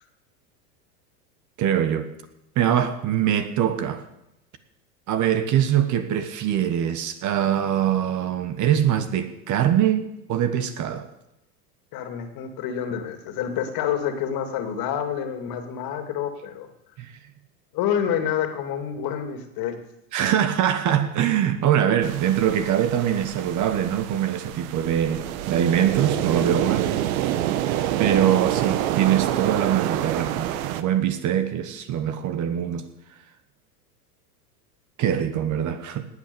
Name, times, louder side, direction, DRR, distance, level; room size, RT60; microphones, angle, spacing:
voice 1, 1.6-2.1 2.5-4.0 5.1-11.1 17.0-17.1 20.1-27.0 28.0-32.9 35.0-36.1, right 10 dB, 40° right, 1.4 m, -23 dB
voice 2, 11.9-16.7 17.7-19.8, left 9 dB, 45° left, 2.5 m, -28 dB
sound 1, 22.0-30.8, right 12 dB, 60° right, 1.2 m, -27 dB
19.0 x 8.1 x 7.0 m
hypercardioid pair, 110°, 47 cm